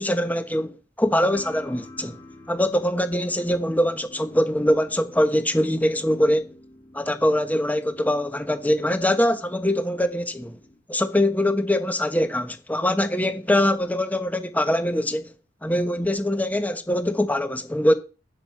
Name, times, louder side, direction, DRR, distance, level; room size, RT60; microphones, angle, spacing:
voice 1, 0.0-2.2 2.5-6.5 6.9-10.6 10.9-15.3 15.6-17.9, left 1 dB, 10° left, 1.0 m, -23 dB
sound 1, 1.3-10.8, left 1 dB, 25° left, 4.3 m, -48 dB
8.6 x 7.7 x 5.9 m
head